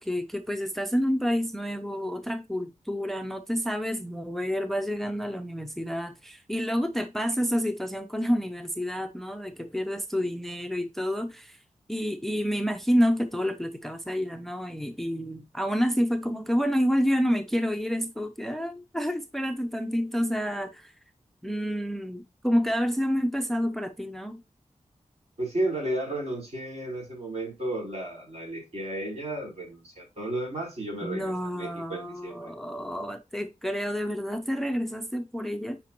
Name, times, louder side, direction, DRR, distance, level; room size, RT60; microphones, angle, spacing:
voice 1, 0.0-11.6 11.9-20.9 21.4-24.4 31.0-35.8, equal, ahead, 0.6 m, -29 dB
voice 2, 25.4-32.5, right 1 dB, 55° right, 4.7 m, -33 dB
8.7 x 5.2 x 3.0 m
wide cardioid pair, 90°, 13 cm